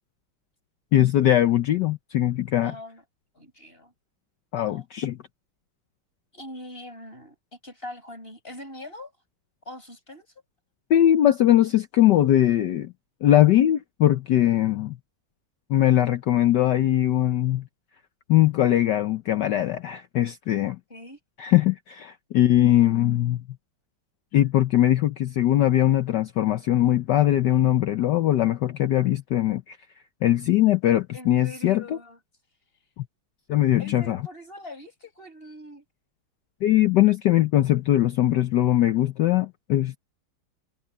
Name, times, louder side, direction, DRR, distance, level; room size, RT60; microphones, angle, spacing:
voice 1, 0.9-2.7 4.5-5.2 10.9-12.9 13.2-15.0 15.7-17.7 18.3-20.8 21.4-23.4 24.3-29.8 30.2-31.8 33.0-33.1 33.5-34.2 36.6-40.0, left 13 dB, 65° left, 1.2 m, -21 dB
voice 2, 2.6-3.0 3.3-3.9 4.5-4.8 6.3-9.1 9.6-10.3 20.9-21.2 31.1-32.2 33.8-35.8, left 1 dB, 25° left, 6.8 m, -42 dB
omnidirectional pair, 2.3 m